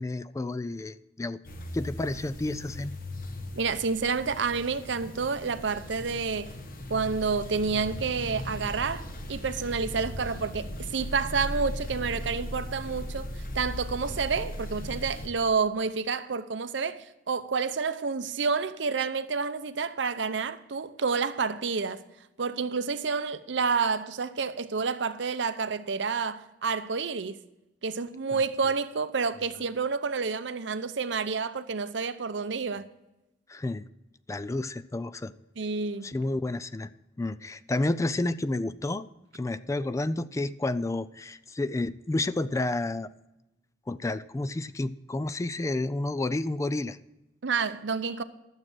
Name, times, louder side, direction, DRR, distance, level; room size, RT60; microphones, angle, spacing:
voice 1, 0.0-1.4 1.7-2.9 33.5-33.9 34.3-35.3 36.0-36.9 37.2-39.1 39.3-43.1 43.9-47.0, left 2 dB, 15° left, 0.3 m, -30 dB
sound 1, 1.4-15.3, left 1 dB, 50° left, 1.3 m, -38 dB
voice 2, 3.6-6.5 6.9-22.0 22.4-27.4 27.8-32.9 35.6-36.0 47.4-48.2, right 5 dB, 75° right, 0.7 m, -29 dB
12.0 x 7.4 x 6.2 m
head